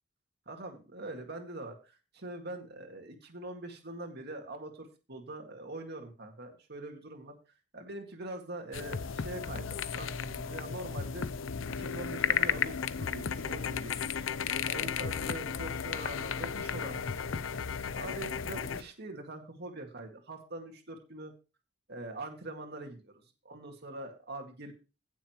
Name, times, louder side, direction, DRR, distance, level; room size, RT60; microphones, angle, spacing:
voice 1, 0.5-7.4 7.7-11.3 11.8-14.2 14.6-17.5 17.9-21.3 21.9-24.7, right 2 dB, 55° right, 3 dB, 2.1 m, -43 dB
sound 1, 8.7-18.8, left 7 dB, 90° left, 0.6 m, -34 dB
16.5 x 7.0 x 3.1 m, 0.30 s
head